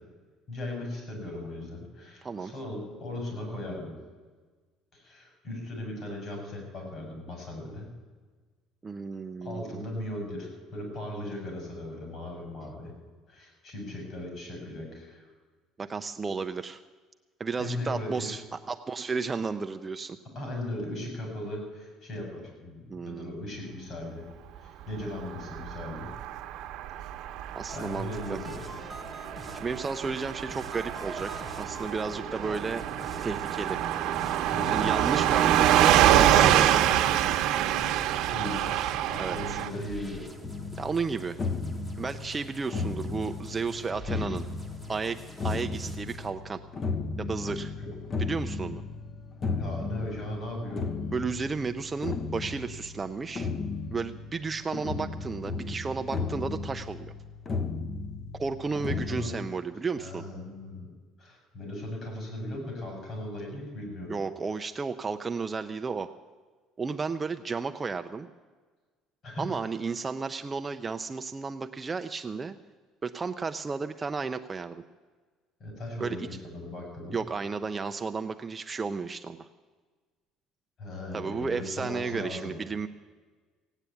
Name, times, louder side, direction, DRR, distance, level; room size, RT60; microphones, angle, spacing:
voice 1, 0.5-3.9 4.9-7.9 9.4-12.9 13.3-15.3 17.6-18.3 20.3-24.2 24.6-26.1 27.7-28.5 34.5-35.0 38.3-40.2 47.8-47.9 49.4-50.9 58.7-59.4 60.0-60.9 61.2-64.2 69.2-69.5 75.6-77.2 80.8-82.6, left 1 dB, 45° left, 1 dB, 6.0 m, -38 dB
voice 2, 2.2-2.5 8.8-9.8 15.8-16.8 17.4-20.2 22.9-23.3 27.6-28.4 29.5-32.9 33.2-33.8 34.7-36.9 39.2-39.6 40.8-41.4 42.0-44.4 44.9-46.6 47.2-47.7 48.2-48.8 51.1-53.5 53.9-57.1 58.4-60.3 64.1-66.1 66.8-68.3 69.4-72.5 73.0-74.8 76.0-76.3 77.1-79.5 81.1-82.9, right 4 dB, 20° right, 7 dB, 0.4 m, -33 dB
Car passing by / Truck, 25.3-39.7, right 12 dB, 65° right, 0.9 m, -26 dB
sound 1, 27.7-46.3, equal, 10° left, 1.1 m, -45 dB
sound 2, 40.4-59.3, left 4 dB, 30° left, 0.7 m, -35 dB
17.0 x 9.0 x 8.4 m, 1.4 s
cardioid pair, 155°, 0 cm